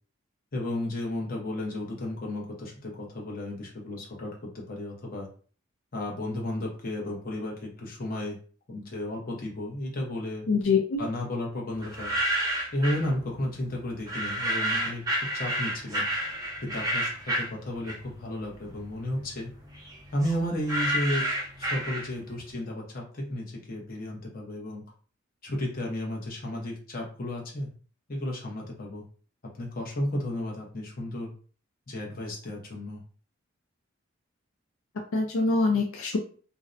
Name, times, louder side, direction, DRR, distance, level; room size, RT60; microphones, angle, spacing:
voice 1, 0.5-5.3 5.9-8.4 8.7-10.5 11.0-12.2 12.7-15.0 15.3-16.1 16.6-19.5 20.1-21.2 21.6-24.8 25.4-27.7 28.1-29.0 29.5-31.3 31.9-33.0, left 1 dB, 45° left, -1 dB, 0.7 m, -33 dB
voice 2, 10.5-11.0 35.1-36.2, left 4 dB, 80° left, 2 dB, 0.4 m, -24 dB
sound 1, 11.8-13.1 14.1-18.3 18.7-22.4, right 1 dB, 20° right, 0.5 m, -30 dB
2.6 x 2.0 x 2.4 m, 0.41 s
head